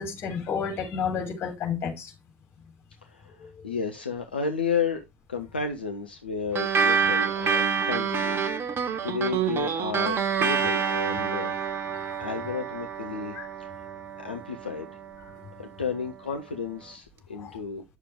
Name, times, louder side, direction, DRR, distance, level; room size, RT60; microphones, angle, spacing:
voice 1, 0.0-2.1 3.4-3.6 11.9-12.1 13.3-13.5 17.4-17.6, left 6 dB, 50° left, 4.2 m, -31 dB
voice 2, 3.0-8.4 9.0-11.7 12.2-13.3 13.6-13.7 14.2-14.9 15.6-17.8, left 5 dB, 90° left, 0.9 m, -32 dB
sound 1, 6.5-15.4, right 7 dB, 50° right, 1.6 m, -27 dB
11.0 x 6.6 x 3.6 m
figure-of-eight pair, 55°, 5 cm